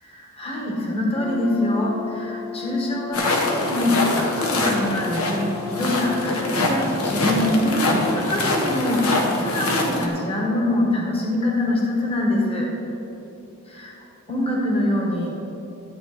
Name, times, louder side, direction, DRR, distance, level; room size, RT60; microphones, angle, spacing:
voice 1, 0.0-12.7 13.7-13.9 14.3-15.3, left 1 dB, 25° left, -2 dB, 1.6 m, -24 dB
Brass instrument, 1.1-8.8, left 8 dB, 65° left, 1.6 m, -35 dB
sound 1, 3.1-10.1, left 2 dB, 80° left, 1.4 m, -24 dB
12.5 x 8.6 x 4.3 m, 2.9 s
head